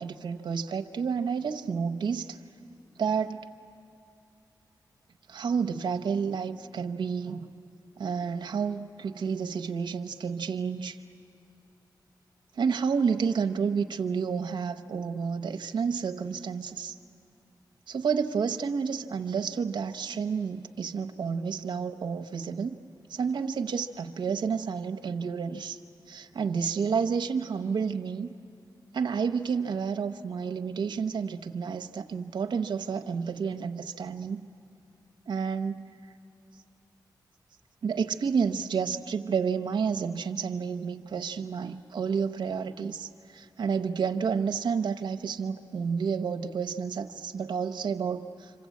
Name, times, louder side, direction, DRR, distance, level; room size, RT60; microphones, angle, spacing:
voice 1, 0.0-2.4 3.0-3.4 5.3-7.5 8.0-11.0 12.6-16.9 17.9-22.8 23.1-25.8 26.1-28.3 28.9-34.4 35.3-35.8 37.8-48.7, right 6 dB, 80° right, 7 dB, 0.8 m, -30 dB
26.5 x 26.5 x 8.4 m, 2.6 s
wide cardioid pair, 180°, 8 cm